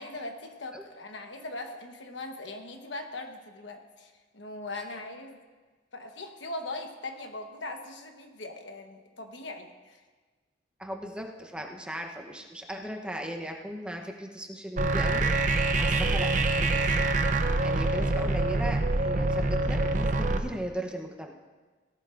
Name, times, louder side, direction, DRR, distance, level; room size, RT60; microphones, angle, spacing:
voice 1, 0.0-5.4 5.9-10.0, left 2 dB, 75° left, 4 dB, 1.1 m, -40 dB
voice 2, 10.8-17.1 17.6-21.3, right 1 dB, 5° right, 1 dB, 0.8 m, -37 dB
sound 1, 14.8-20.4, right 2 dB, 45° right, 0.7 m, -25 dB
17.0 x 11.5 x 2.5 m, 1.4 s
head